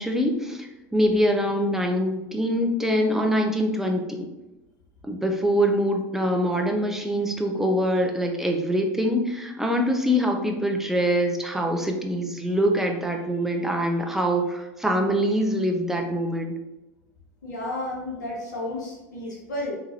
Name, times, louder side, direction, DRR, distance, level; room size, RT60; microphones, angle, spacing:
voice 1, 0.0-4.3 5.0-16.5, equal, 5° right, 2 dB, 0.6 m, -24 dB
voice 2, 17.4-19.7, left 1 dB, 90° left, -3 dB, 0.9 m, -32 dB
3.7 x 2.9 x 2.8 m, 1.0 s
hypercardioid pair, 85°, 9 cm